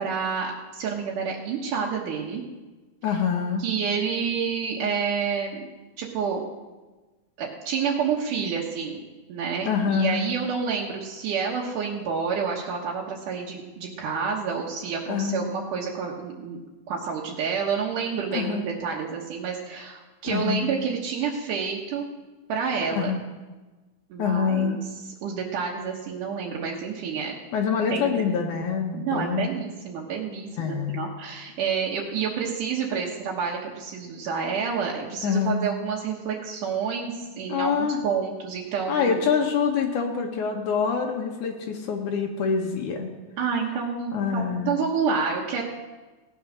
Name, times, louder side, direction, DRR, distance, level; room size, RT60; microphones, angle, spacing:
voice 1, 0.0-2.4 3.6-5.6 6.0-6.4 7.4-9.0 9.3-16.6 16.9-22.1 22.5-23.1 24.1-24.8 25.2-27.3 27.9-28.2 28.9-39.3 43.4-45.6, right 6 dB, 80° right, -3 dB, 2.8 m, -29 dB
voice 2, 3.0-3.6 9.7-10.3 15.1-15.5 18.3-18.7 20.3-20.7 23.0-23.2 24.2-24.8 27.5-29.5 30.6-31.1 35.2-35.6 37.5-38.0 38.9-43.1 44.1-44.7, left 6 dB, 75° left, 1 dB, 2.6 m, -25 dB
17.0 x 8.6 x 6.3 m, 1.2 s
omnidirectional pair, 3.6 m